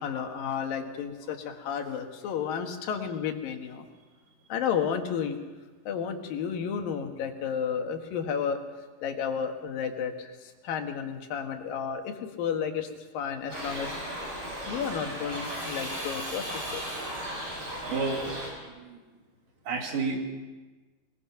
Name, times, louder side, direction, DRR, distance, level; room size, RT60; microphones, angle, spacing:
voice 1, 0.0-3.9 4.5-5.4 5.9-8.6 9.0-12.9 13.1-13.9 14.7-16.8, left 7 dB, 90° left, 5 dB, 3.3 m, -32 dB
Shout / Livestock farm animals working animals, 13.5-18.5, equal, 35° right, 7.6 m, -36 dB
voice 2, 17.9-18.2 18.8-19.0 19.7-20.2, right 4 dB, 70° right, 1 dB, 4.1 m, -30 dB
21.5 x 21.5 x 5.9 m, 1.3 s
omnidirectional pair, 3.9 m